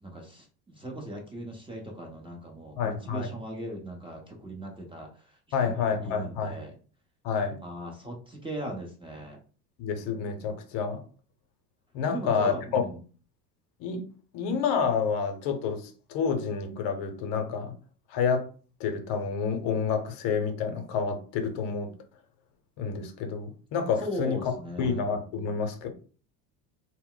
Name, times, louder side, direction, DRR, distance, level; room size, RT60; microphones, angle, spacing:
voice 1, 0.0-6.7 7.6-9.4 12.1-13.0 24.0-25.0 25.3-25.5, right 1 dB, 10° right, 0 dB, 0.7 m, -39 dB
voice 2, 2.8-3.3 5.5-6.6 7.2-7.6 9.8-11.0 11.9-12.8 13.8-14.0 14.3-17.7 18.1-18.5 18.8-21.9 22.8-24.4 24.8-25.9, left 6 dB, 60° left, 6 dB, 0.8 m, -29 dB
2.1 x 2.1 x 3.7 m, 0.39 s
supercardioid pair, 95°, 46 cm